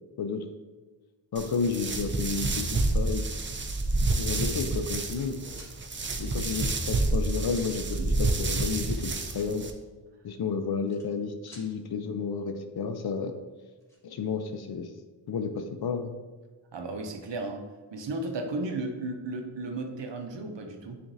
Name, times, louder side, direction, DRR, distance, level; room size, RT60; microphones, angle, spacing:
voice 1, 1.3-3.3 4.2-5.4 6.2-9.7 10.2-13.3 14.0-14.9 15.3-16.1, left 5 dB, 60° left, 7 dB, 0.5 m, -31 dB
sound 1, 1.4-9.7, right 2 dB, 30° right, 0.4 m, -29 dB
sound 2, 2.1-2.7 3.7-3.8 4.6-5.3 5.5-5.7 6.9-7.0 7.2-7.4 7.7-8.6 10.5-11.2 11.5-11.7 13.2-13.3 13.6-14.0, equal, 5° left, 1.4 m, -52 dB
voice 2, 16.7-17.7 17.9-21.0, right 2 dB, 75° right, 4 dB, 0.7 m, -34 dB
6.8 x 2.5 x 2.6 m, 1.3 s
wide cardioid pair, 60°, 44 cm